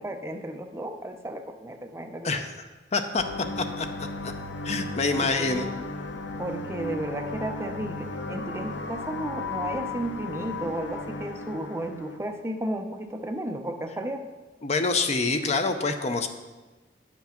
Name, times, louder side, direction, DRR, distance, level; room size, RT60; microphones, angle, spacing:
voice 1, 0.0-2.4 5.1-5.6 6.4-14.3, right 1 dB, 15° right, 5 dB, 0.6 m, -33 dB
voice 2, 2.9-3.2 3.6-3.9 4.6-5.7 14.6-16.3, left 3 dB, 40° left, 7 dB, 0.6 m, -26 dB
sound 1, 3.2-12.2, left 2 dB, 80° left, 0.7 m, -35 dB
9.5 x 5.9 x 5.8 m, 1.2 s
head